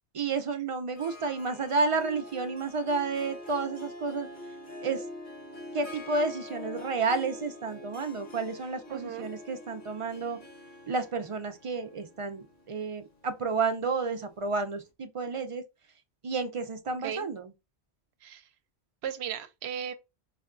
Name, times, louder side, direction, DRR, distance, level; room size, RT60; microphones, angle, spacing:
voice 1, 0.1-4.3 4.8-5.0 5.7-10.4 10.9-15.6 16.2-17.5, right 4 dB, 50° right, 0.3 m, -31 dB
Harp, 0.9-14.5, left 2 dB, 50° left, 1.1 m, -45 dB
voice 2, 8.9-9.3 17.0-17.3 18.2-18.5 19.0-19.9, right 8 dB, 75° right, 0.8 m, -36 dB
5.0 x 2.2 x 2.4 m
omnidirectional pair, 1.1 m